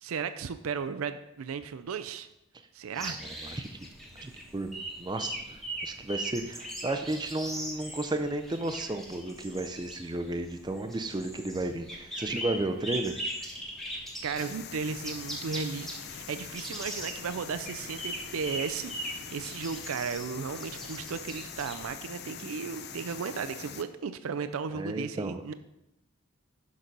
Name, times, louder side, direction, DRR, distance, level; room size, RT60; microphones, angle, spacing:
voice 1, 0.0-2.3 2.7-3.2 14.2-25.5, right 6 dB, 85° right, 11 dB, 0.4 m, -35 dB
sound 1, 2.9-22.0, right 1 dB, ahead, 1.0 m, -41 dB
voice 2, 3.0-3.7 4.2-13.2 24.7-25.4, right 2 dB, 20° right, 8 dB, 0.4 m, -33 dB
sound 2, 14.4-23.8, left 7 dB, 50° left, 0.5 m, -43 dB
6.5 x 6.0 x 5.3 m, 0.87 s
head